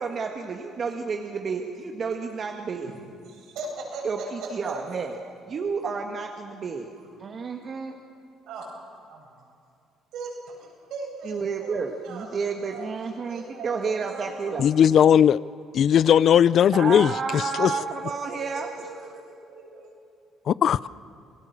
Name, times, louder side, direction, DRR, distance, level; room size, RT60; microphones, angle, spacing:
voice 1, 0.0-3.0 4.0-5.2 5.5-6.9 7.2-8.0 11.2-14.7 16.7-18.7, right 5 dB, 45° right, 3 dB, 1.6 m, -30 dB
voice 2, 3.3-4.7 8.5-8.6 10.1-11.8 12.0-12.3 12.6-14.5 17.6-17.7 18.3-19.1 19.4-19.9, right 3 dB, 80° right, -2 dB, 7.9 m, -39 dB
voice 3, 14.6-15.4 15.7-17.7 20.5-20.9, left 9 dB, 60° left, 19 dB, 0.5 m, -18 dB
28.5 x 19.0 x 6.8 m, 2.4 s
cardioid pair, 90°, 0 cm